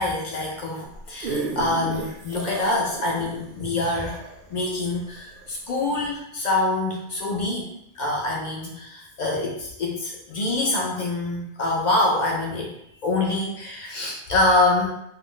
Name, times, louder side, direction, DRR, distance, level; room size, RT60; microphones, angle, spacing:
voice 1, 0.0-4.2 4.5-7.7 7.9-12.7 13.0-14.9, left 2 dB, 65° left, -2 dB, 0.4 m, -25 dB
sound 1, 0.9-5.5 6.0-6.1, right 3 dB, 60° right, 0.6 m, -34 dB
2.4 x 2.0 x 3.7 m, 0.79 s
omnidirectional pair, 1.3 m